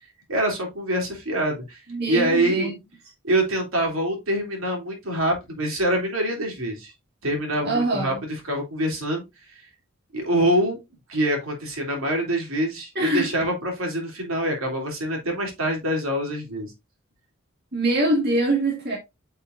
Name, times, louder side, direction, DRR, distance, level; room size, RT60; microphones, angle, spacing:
voice 1, 0.3-2.8 3.2-6.9 7.2-9.2 9.5-9.7 10.1-10.8 11.1-16.7, right 1 dB, 80° right, 3.0 m, -25 dB
voice 2, 1.9-2.7 7.6-8.2 13.0-13.3 17.7-19.0, right 2 dB, 50° right, 2.3 m, -23 dB
9.2 x 5.5 x 2.6 m
head